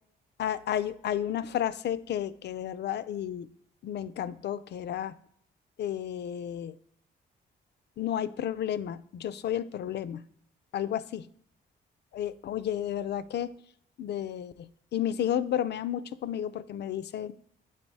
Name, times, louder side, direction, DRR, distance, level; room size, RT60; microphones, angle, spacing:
voice 1, 0.4-3.5 3.8-5.2 5.8-6.7 8.0-10.2 10.7-11.2 12.1-13.5 14.0-17.3, left 10 dB, 60° left, 15 dB, 0.4 m, -32 dB
8.8 x 4.2 x 4.6 m, 0.67 s
cardioid pair, 75°, 20 cm